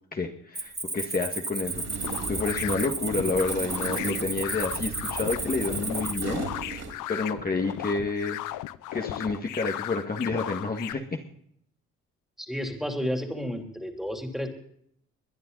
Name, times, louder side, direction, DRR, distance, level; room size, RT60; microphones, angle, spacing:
voice 1, 0.1-1.8 2.3-8.4 8.9-11.2, left 3 dB, 30° left, 2 dB, 1.9 m, -29 dB
Cricket, 0.6-6.2, right 3 dB, 20° right, 2.3 m, -34 dB
sound 1, 1.6-6.9, right 4 dB, 60° right, 4.7 m, -37 dB
sound 2, 2.0-10.9, left 14 dB, 85° left, 0.8 m, -36 dB
voice 2, 12.4-14.5, equal, ahead, 4 dB, 3.3 m, -31 dB
22.0 x 10.5 x 4.0 m, 0.68 s
cardioid pair, 90°, 30 cm